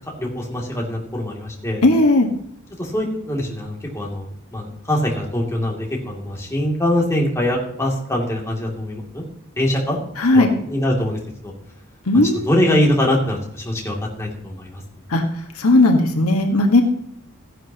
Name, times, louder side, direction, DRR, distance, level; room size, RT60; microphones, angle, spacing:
voice 1, 0.2-1.8 2.8-9.3 9.6-10.0 10.3-11.5 12.5-14.8, left 1 dB, 15° left, -2 dB, 2.6 m, -23 dB
voice 2, 1.8-2.3 10.2-10.5 12.1-12.5 15.1-15.2 15.5-16.8, left 2 dB, 75° left, 3 dB, 1.5 m, -15 dB
15.0 x 11.0 x 2.9 m, 0.71 s
head